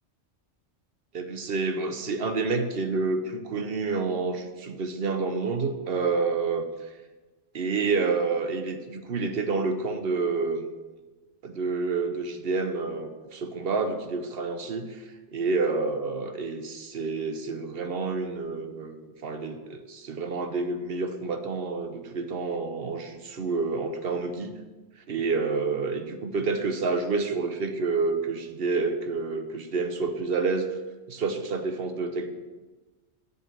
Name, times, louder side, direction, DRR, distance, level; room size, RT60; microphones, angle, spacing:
voice 1, 1.1-6.6 7.5-10.7 11.4-15.0 15.3-19.0 19.2-24.6 25.1-30.7 31.1-32.3, right 4 dB, 55° right, 7 dB, 1.1 m, -28 dB
7.4 x 7.3 x 6.8 m, 1.3 s
omnidirectional pair, 1.2 m